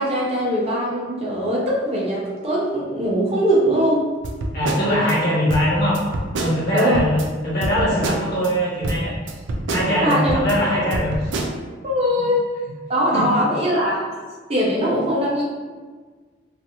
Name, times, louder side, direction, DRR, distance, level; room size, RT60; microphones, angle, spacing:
voice 1, 0.0-4.0 6.7-7.0 10.0-10.3 10.7-10.8 11.8-12.5 12.9-14.1 14.5-15.4, equal, 35° right, -5 dB, 0.7 m, -21 dB
sound 1, 4.2-5.1 5.5-7.3 7.6-8.5 8.8-10.6 10.9-11.5, right 2 dB, 85° right, 0.4 m, -27 dB
voice 2, 4.5-6.0 6.4-9.1 9.7-11.3 13.1-13.4, equal, 55° left, -8 dB, 1.2 m, -21 dB
2.9 x 2.5 x 2.7 m, 1.4 s
head